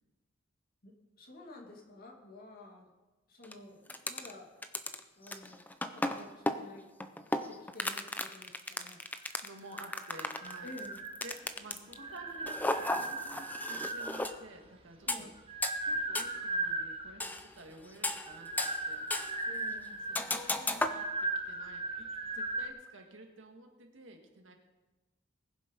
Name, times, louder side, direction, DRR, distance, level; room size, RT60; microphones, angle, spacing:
voice 1, 0.8-2.9 3.3-4.5 5.1-5.6 5.9-6.9 7.5-9.0 10.6-11.0 15.1-15.3 19.4-20.0, left 1 dB, 45° left, 0 dB, 2.4 m, -51 dB
sound 1, 3.4-3.5 3.9-4.3 4.6-12.0 12.5-14.4 15.1-15.2 15.6-15.8 16.1-16.3 17.2-17.5 17.9-18.8 19.1-19.4 20.1-21.0, left 2 dB, 10° left, 0.6 m, -34 dB
voice 2, 9.4-10.7 11.2-15.3 15.8-19.1 20.1-24.6, right 2 dB, 65° right, 3 dB, 1.8 m, -51 dB
sound 2, 9.7-11.5 11.9-14.4 15.1-17.2 18.2-22.7, right 2 dB, 30° right, 1.2 m, -38 dB
20.0 x 7.4 x 5.3 m, 1.2 s
head